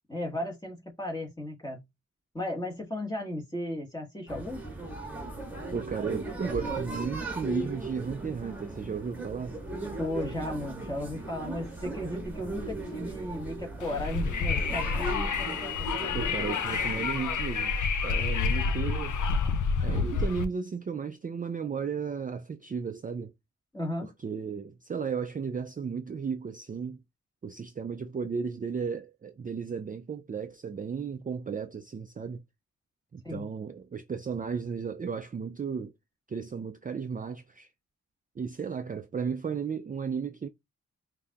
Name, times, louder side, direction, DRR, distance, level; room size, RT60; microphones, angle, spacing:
voice 1, 0.1-1.8 2.3-4.6 10.0-15.1 23.7-24.1 33.2-33.5, left 1 dB, 15° left, 1.5 m, -35 dB
sound 1, 4.3-17.1, right 2 dB, 5° right, 1.5 m, -37 dB
voice 2, 5.7-9.6 16.1-17.7 18.0-19.2 19.8-23.3 24.0-27.0 27.4-32.4 33.1-35.9 36.3-37.7 38.4-40.5, right 6 dB, 30° right, 0.3 m, -34 dB
Wind, 13.8-20.5, left 5 dB, 85° left, 0.6 m, -29 dB
5.1 x 2.7 x 2.3 m
wide cardioid pair, 115°, 30 cm